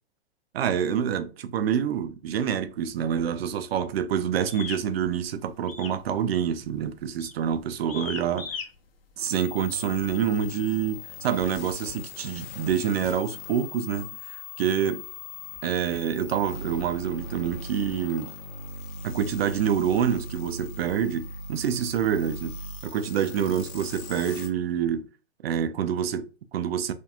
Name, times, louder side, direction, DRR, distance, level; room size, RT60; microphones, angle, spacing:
voice 1, 0.5-8.6 9.2-15.0 15.6-18.3 19.0-22.6 22.8-25.1 25.4-26.9, right 8 dB, 75° right, 0.5 m, -27 dB
sound 1, 4.5-4.8 5.7-6.0 6.3-6.7 7.2-7.4 7.9-8.7, left 6 dB, 65° left, 0.7 m, -36 dB
sound 2, 9.2-24.5, left 2 dB, 35° left, 0.6 m, -39 dB
2.5 x 2.3 x 2.7 m
hypercardioid pair, 135°, 31 cm